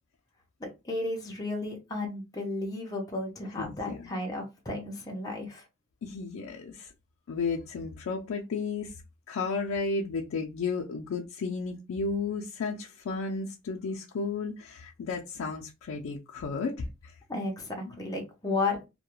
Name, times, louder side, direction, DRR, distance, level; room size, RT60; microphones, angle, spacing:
voice 1, 0.6-5.6 17.3-18.8, left 2 dB, 20° left, 0.5 m, -33 dB
voice 2, 3.6-4.1 6.0-6.9 7.3-9.0 9.3-17.2, left 4 dB, 85° left, 0.4 m, -33 dB
2.2 x 2.1 x 2.9 m
head